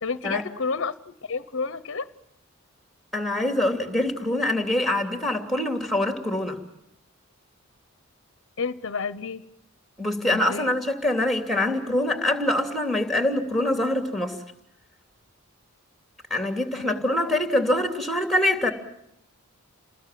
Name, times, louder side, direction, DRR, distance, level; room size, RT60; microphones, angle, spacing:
voice 1, 0.0-2.1 8.6-9.4 10.3-10.7 16.7-17.3, left 4 dB, 60° left, 15 dB, 0.9 m, -31 dB
voice 2, 3.1-6.6 10.0-14.4 16.3-18.7, left 1 dB, ahead, 5 dB, 2.9 m, -24 dB
28.5 x 20.5 x 7.6 m, 0.77 s
head